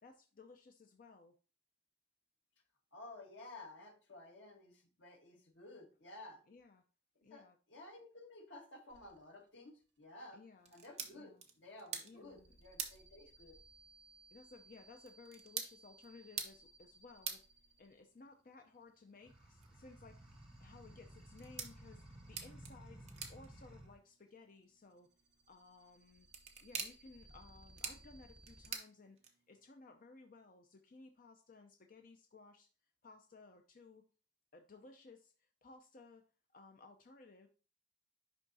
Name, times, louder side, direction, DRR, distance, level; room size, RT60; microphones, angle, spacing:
voice 1, 0.0-1.3 6.5-6.8 7.2-7.6 10.3-10.8 11.1-11.5 12.0-12.5 14.3-17.4 17.8-25.1 25.5-26.3 26.6-32.7 33.0-34.1 34.5-36.2 36.5-37.5, left 3 dB, 45° left, 5 dB, 0.5 m, -59 dB
voice 2, 2.9-6.4 7.3-10.4 10.7-13.6, left 2 dB, 80° left, 2 dB, 1.6 m, -54 dB
sound 1, 8.9-9.5 9.8-10.3 12.2-22.6 24.6-28.7, right 2 dB, 65° right, 1.3 m, -64 dB
sound 2, 10.6-29.7, right 6 dB, 35° right, 1.0 m, -50 dB
sound 3, 19.2-24.0, right 1 dB, 5° right, 2.0 m, -56 dB
10.5 x 3.6 x 2.7 m, 0.35 s
head